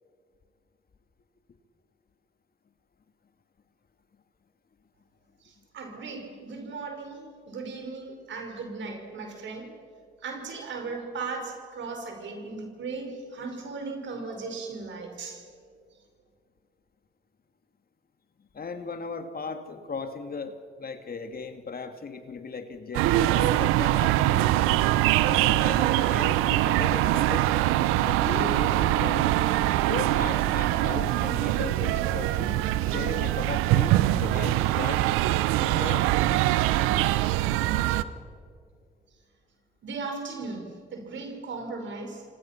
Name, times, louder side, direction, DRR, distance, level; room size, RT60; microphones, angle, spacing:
voice 1, 5.4-9.7 10.2-15.4 39.8-42.2, right 4 dB, 60° right, 4 dB, 5.2 m, -37 dB
voice 2, 18.5-24.5 25.2-27.5 28.0-29.4 29.8-35.0 35.6-36.1, left 4 dB, 45° left, 7 dB, 2.4 m, -37 dB
sound 1, 22.9-38.0, right 15 dB, 80° right, 0.8 m, -23 dB
29.0 x 25.5 x 6.0 m, 2.2 s
hypercardioid pair, 45°, 21 cm